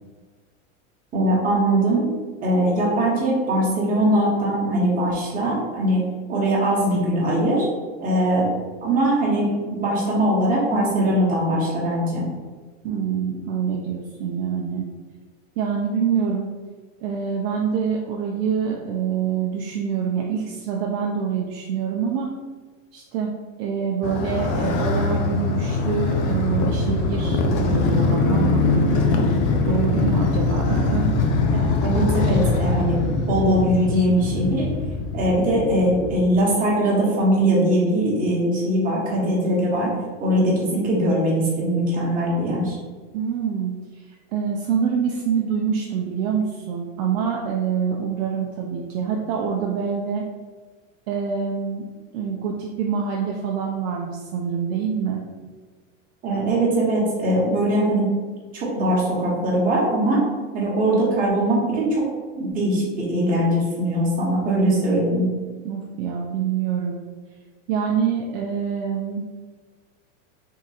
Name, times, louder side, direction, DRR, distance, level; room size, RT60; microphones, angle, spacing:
voice 1, 1.1-2.0 2.4-6.0 6.3-7.6 8.0-8.5 8.8-12.2 31.8-34.7 35.1-39.9 40.2-42.8 56.2-58.1 58.5-60.2 60.5-62.0 62.3-65.3, right 1 dB, 20° right, -5 dB, 1.3 m, -21 dB
voice 2, 12.8-14.9 15.6-16.5 17.0-22.3 22.9-23.3 23.6-29.0 29.7-31.2 43.1-43.8 44.3-50.2 51.1-51.9 52.1-55.2 65.6-67.0 67.7-69.2, right 7 dB, 55° right, -1 dB, 0.6 m, -25 dB
Motorcycle, 24.0-36.2, left 3 dB, 30° left, 0.4 m, -22 dB
3.7 x 2.5 x 4.1 m, 1.4 s
supercardioid pair, 145°, 38 cm